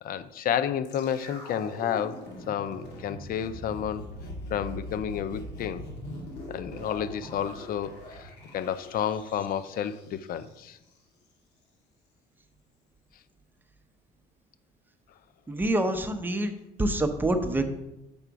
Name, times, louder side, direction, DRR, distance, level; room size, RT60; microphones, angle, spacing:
voice 1, 0.0-4.0 4.5-5.9 6.5-8.3 8.5-10.8, left 9 dB, 60° left, 13 dB, 0.5 m, -31 dB
sound 1, 0.8-11.0 11.2-11.3, left 1 dB, 75° left, 2.5 m, -42 dB
voice 2, 15.5-16.5 16.8-17.7, right 1 dB, 10° right, 6 dB, 0.8 m, -26 dB
7.0 x 4.9 x 4.7 m, 0.91 s
cardioid pair, 110°, 17 cm